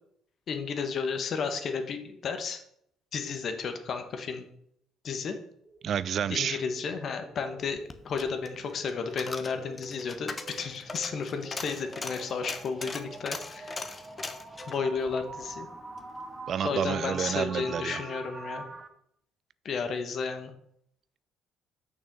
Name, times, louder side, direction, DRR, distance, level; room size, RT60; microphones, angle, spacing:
voice 1, 0.5-2.6 3.1-4.4 5.0-5.3 6.3-7.8 8.0-13.8 14.7-15.7 16.6-18.6 19.6-20.5, left 5 dB, 55° left, 1.4 m, -33 dB
sound 1, 5.6-18.9, right 3 dB, 30° right, 1.3 m, -45 dB
voice 2, 5.8-6.6 16.5-18.0, right 8 dB, 55° right, 0.3 m, -29 dB
Coin (dropping), 7.7-16.1 16.4-16.5, left 3 dB, 30° left, 1.0 m, -41 dB
6.5 x 6.1 x 6.2 m
hypercardioid pair, 55°, 0 cm